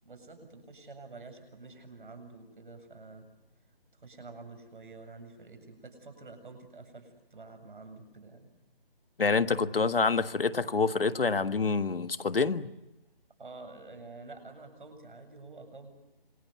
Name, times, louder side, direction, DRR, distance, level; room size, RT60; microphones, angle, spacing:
voice 1, 0.0-3.3 3.9-8.5 13.4-15.9, right 3 dB, 60° right, 7 dB, 7.7 m, -48 dB
voice 2, 9.2-12.7, left 4 dB, 70° left, 11 dB, 1.6 m, -27 dB
27.0 x 25.0 x 8.2 m, 0.97 s
figure-of-eight pair, 175°, 29 cm